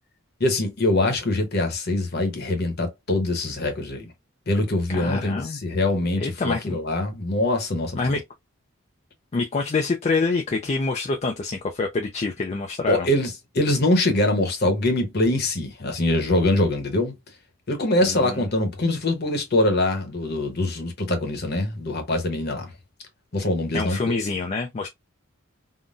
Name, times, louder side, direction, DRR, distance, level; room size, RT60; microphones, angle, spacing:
voice 1, 0.4-4.1 4.5-6.3 6.7-8.2 12.9-17.1 17.7-22.7 23.3-24.2, left 1 dB, 50° left, 0.9 m, -23 dB
voice 2, 4.9-5.6 6.2-6.8 8.0-8.2 9.3-13.1 18.0-18.4 23.7-24.9, left 3 dB, 30° left, 0.3 m, -26 dB
3.7 x 2.1 x 2.5 m
head